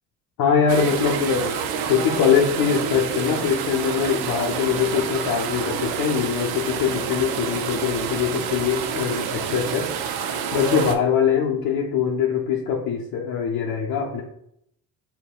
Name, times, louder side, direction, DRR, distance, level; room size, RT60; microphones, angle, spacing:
voice 1, 0.4-1.5 1.9-9.9 10.5-14.2, left 7 dB, 70° left, -1 dB, 0.6 m, -22 dB
sound 1, 0.7-11.0, right 7 dB, 75° right, 0.5 m, -28 dB
5.4 x 2.2 x 2.2 m, 0.74 s
supercardioid pair, 70°, 38 cm